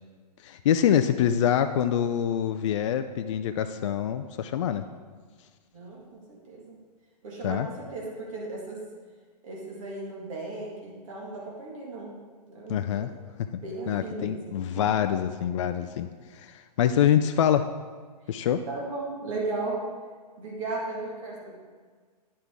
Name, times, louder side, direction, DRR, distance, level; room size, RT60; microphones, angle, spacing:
voice 1, 0.4-4.9 7.4-7.7 12.7-13.1 13.9-16.1 16.3-17.6 18.3-18.6, left 9 dB, 50° left, 9 dB, 0.4 m, -25 dB
voice 2, 5.7-6.8 7.2-8.8 9.4-12.1 12.4-13.1 13.6-14.9 18.7-19.8 20.4-21.5, right 2 dB, 50° right, -3 dB, 1.9 m, -36 dB
9.7 x 5.7 x 3.6 m, 1.5 s
figure-of-eight pair, 125°, 21 cm